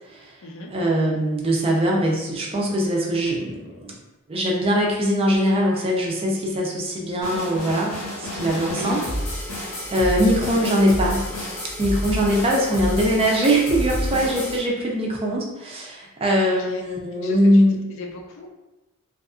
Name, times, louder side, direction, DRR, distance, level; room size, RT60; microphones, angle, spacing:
voice 1, 0.0-0.4 0.7-3.9 4.3-9.1 9.3-11.2 11.8-17.9, equal, 25° right, -1 dB, 0.4 m, -22 dB
sound 1, 7.2-14.6, equal, 85° left, 0.8 m, -29 dB
voice 2, 8.7-9.2 10.6-11.6 16.4-16.8 17.1-18.5, left 1 dB, 60° left, 2 dB, 0.4 m, -38 dB
2.7 x 2.3 x 2.4 m, 1.0 s
head